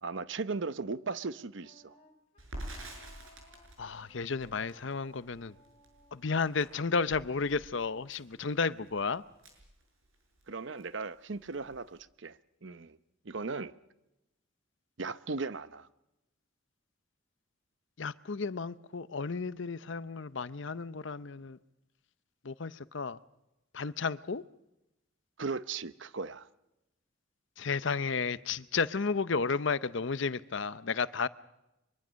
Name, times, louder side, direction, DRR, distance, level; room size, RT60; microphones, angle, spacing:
voice 1, 0.0-1.9 10.5-13.0 13.2-13.7 15.0-15.9 25.4-26.5, right 4 dB, 60° right, 0.8 m, -37 dB
Wind instrument woodwind instrument, 1.6-8.5, left 1 dB, 30° left, 3.9 m, -63 dB
Crackle, 2.4-10.5 10.8-10.9 11.2-12.0, right 1 dB, 75° right, 6.8 m, -48 dB
voice 2, 3.8-5.5 6.1-9.2 18.0-21.6 22.4-23.2 23.7-24.4 27.6-31.3, left 4 dB, 65° left, 0.7 m, -32 dB
23.5 x 23.0 x 6.3 m
head